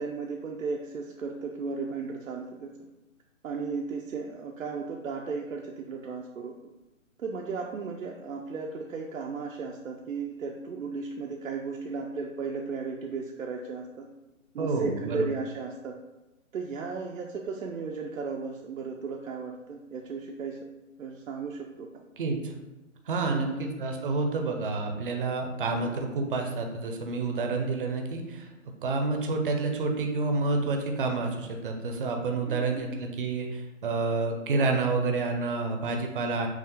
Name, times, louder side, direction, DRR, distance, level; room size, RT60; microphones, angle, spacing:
voice 1, 0.0-2.8 3.4-6.5 7.2-14.1 14.5-16.0 16.5-20.6 21.0-21.9 23.3-23.6 32.5-32.9, right 4 dB, 80° right, 0 dB, 0.6 m, -35 dB
voice 2, 14.6-15.3 22.2-22.5 23.1-28.5 28.8-36.5, right 3 dB, 40° right, 3 dB, 0.6 m, -29 dB
5.8 x 2.4 x 2.9 m, 1.0 s
hypercardioid pair, 155°, 39 cm